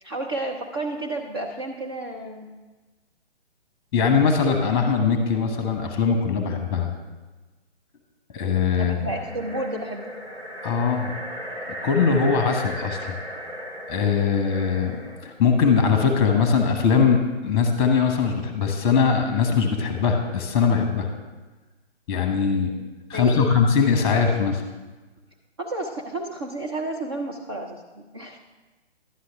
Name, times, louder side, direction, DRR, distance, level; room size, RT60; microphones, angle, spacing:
voice 1, 0.0-2.6 8.8-10.2 23.1-23.6 25.6-28.4, right 2 dB, 25° right, 1 dB, 0.5 m, -31 dB
voice 2, 3.9-6.9 8.3-9.1 10.6-11.1 11.8-13.0 13.9-21.1 22.1-22.7 23.1-24.6, left 6 dB, 20° left, 5 dB, 1.0 m, -21 dB
sound 1, 8.9-15.3, equal, 85° right, 2.2 m, -36 dB
11.5 x 9.5 x 3.5 m, 1.2 s
figure-of-eight pair, 140°, 33 cm